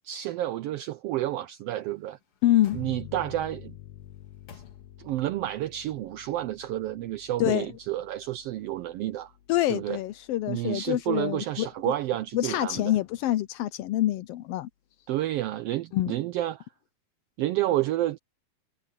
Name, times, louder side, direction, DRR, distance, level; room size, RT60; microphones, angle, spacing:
voice 1, 0.0-2.2 2.7-3.8 4.5-4.6 5.0-9.3 9.7-10.0 10.5-12.9 15.1-16.7 17.4-18.2, right 14 dB, 85° right, 1.4 m, -30 dB
sound 1, 1.7-3.5 4.0-5.3 5.7-5.8, left 7 dB, 55° left, 2.5 m, -55 dB
voice 2, 2.4-2.8 7.4-7.7 9.5-11.7 12.3-14.7 15.9-16.1, left 14 dB, 85° left, 1.3 m, -26 dB
sound 2, 2.7-12.0, left 14 dB, 70° left, 1.5 m, -49 dB
omnidirectional pair, 3.3 m